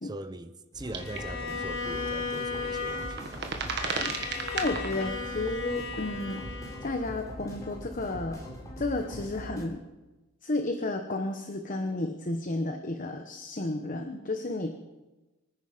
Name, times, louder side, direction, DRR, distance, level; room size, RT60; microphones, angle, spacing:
voice 1, 0.0-3.5, right 1 dB, 20° right, 0.7 m, -41 dB
sound 1, 0.7-9.6, equal, 15° left, 3.6 m, -42 dB
sound 2, 0.9-1.2 1.5-1.6 2.6-5.1 5.7-5.8, right 5 dB, 55° right, 1.6 m, -34 dB
Bowed string instrument, 1.0-7.2, left 4 dB, 90° left, 3.8 m, -36 dB
voice 2, 4.0-6.4 6.8-8.4 8.8-9.8 10.4-14.7, left 2 dB, 40° left, 1.0 m, -32 dB
25.0 x 9.7 x 5.1 m
head